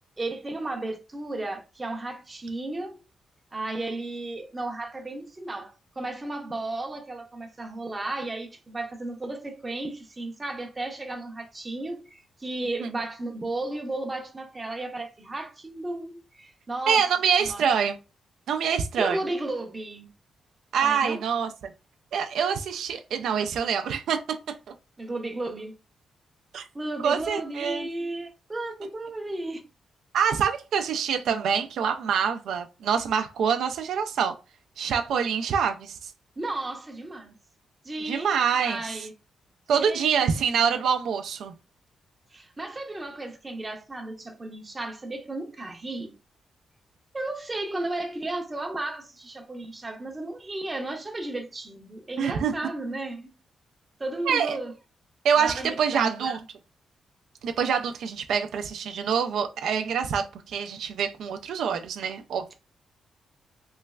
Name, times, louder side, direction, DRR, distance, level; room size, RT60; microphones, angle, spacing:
voice 1, 0.2-3.0 3.5-17.1 17.4-17.7 19.0-20.1 20.8-21.2 25.0-25.7 26.7-29.6 36.4-37.3 37.8-39.1 39.7-40.8 42.3-46.1 47.1-53.3 54.0-54.7 55.4-56.4, right 2 dB, 15° right, 0.6 m, -34 dB
voice 2, 16.9-18.0 18.5-19.2 20.7-21.7 22.1-24.6 26.5-26.7 27.0-27.9 30.1-34.3 34.8-36.1 38.0-39.0 39.7-41.5 52.2-52.5 54.3-54.6 55.2-56.4 57.4-62.5, right 7 dB, 80° right, 0.3 m, -26 dB
3.2 x 3.1 x 2.3 m
wide cardioid pair, 165°, 0 cm